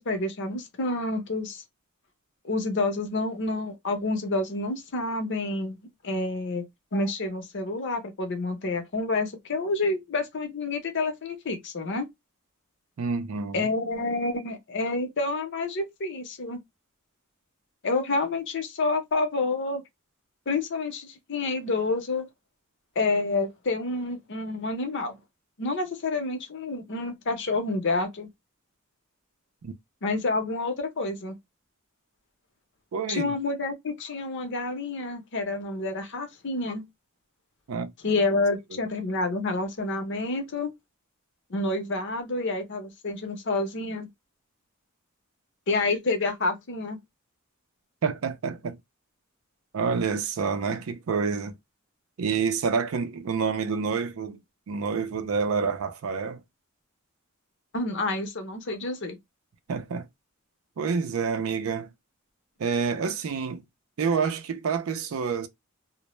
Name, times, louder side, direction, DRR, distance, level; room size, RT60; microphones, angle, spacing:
voice 1, 0.0-1.6 2.4-6.6 6.9-12.1 13.5-16.6 17.8-19.8 20.5-22.3 23.0-25.2 25.6-28.3 30.0-31.3 33.1-36.8 38.0-40.7 41.5-44.1 45.7-47.0 57.7-59.2, left 3 dB, 55° left, 0.7 m, -28 dB
voice 2, 13.0-13.7 29.6-29.7 32.9-33.3 37.7-37.9 48.0-48.8 49.7-51.6 52.2-54.4 54.7-56.4 59.7-60.1 60.8-61.9 62.6-63.6 64.0-65.5, right 5 dB, 70° right, 0.4 m, -28 dB
2.0 x 2.0 x 3.0 m
head